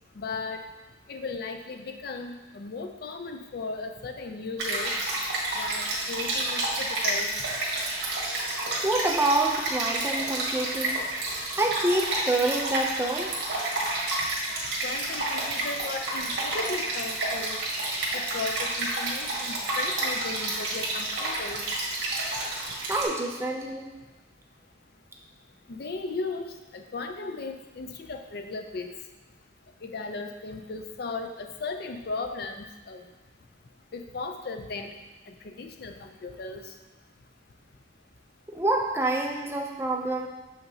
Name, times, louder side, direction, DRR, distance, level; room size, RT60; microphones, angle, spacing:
voice 1, 0.2-0.6 1.1-4.9 5.6-7.3 14.8-17.6 18.1-21.6 25.7-26.5 26.7-28.9 29.8-33.0 33.9-34.9 35.3-36.6, left 3 dB, 55° left, 6 dB, 0.4 m, -36 dB
Stream, 4.6-23.1, right 2 dB, 55° right, 1.7 m, -30 dB
voice 2, 8.8-11.0 11.6-13.3 22.9-23.9 38.5-40.3, right 2 dB, 15° right, 1 dB, 0.5 m, -27 dB
6.4 x 5.7 x 2.8 m, 1.1 s
head